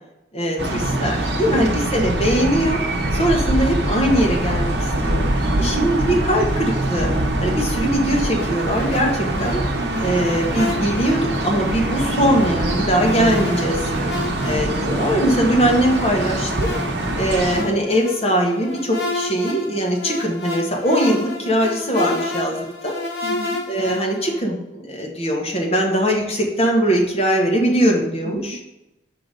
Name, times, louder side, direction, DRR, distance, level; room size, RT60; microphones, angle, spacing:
voice 1, 0.3-2.8 3.1-5.2 5.6-7.1 7.4-9.6 10.0-13.9 14.4-16.7 17.1-22.9 23.7-28.6, equal, 35° left, -1 dB, 1.3 m, -21 dB
sound 1, 0.6-17.6, right 1 dB, 65° right, 0.8 m, -23 dB
voice 2, 5.5-5.9 9.8-10.1 14.0-14.2 14.4-14.6 14.9-15.0 23.2-23.6 28.2-28.6, right 2 dB, 40° right, 7 dB, 0.4 m, -32 dB
sound 2, 8.4-24.4, left 2 dB, 55° left, 1.1 m, -31 dB
6.0 x 3.8 x 5.1 m, 0.94 s
head